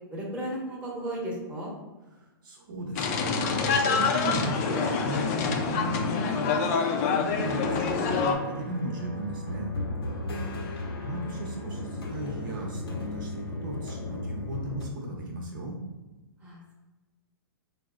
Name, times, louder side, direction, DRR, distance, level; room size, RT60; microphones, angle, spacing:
voice 1, 0.1-1.7 10.2-10.7 16.4-16.7, right 1 dB, 10° right, -5 dB, 0.9 m, -35 dB
voice 2, 2.1-9.7 11.0-15.8, right 1 dB, 60° right, -1 dB, 0.8 m, -36 dB
sound 1, 3.0-8.4, left 5 dB, 40° left, 0.4 m, -26 dB
sound 2, 7.4-14.9, left 2 dB, 85° left, 0.7 m, -36 dB
4.2 x 2.0 x 2.4 m, 1.1 s
hypercardioid pair, 135°, 12 cm